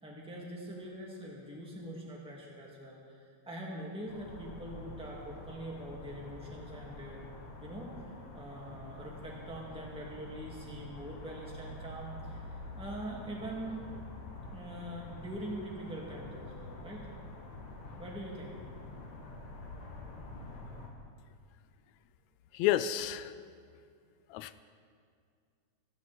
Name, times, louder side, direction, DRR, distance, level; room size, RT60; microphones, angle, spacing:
voice 1, 0.0-7.2 7.6-13.9 14.5-17.1 18.0-18.6, right 1 dB, ahead, -4 dB, 2.1 m, -43 dB
sound 1, 4.1-20.9, left 2 dB, 60° left, 2.7 m, -47 dB
voice 2, 22.5-23.4 24.3-24.6, left 12 dB, 80° left, 13 dB, 1.8 m, -30 dB
26.5 x 9.6 x 4.4 m, 2.2 s
omnidirectional pair, 3.4 m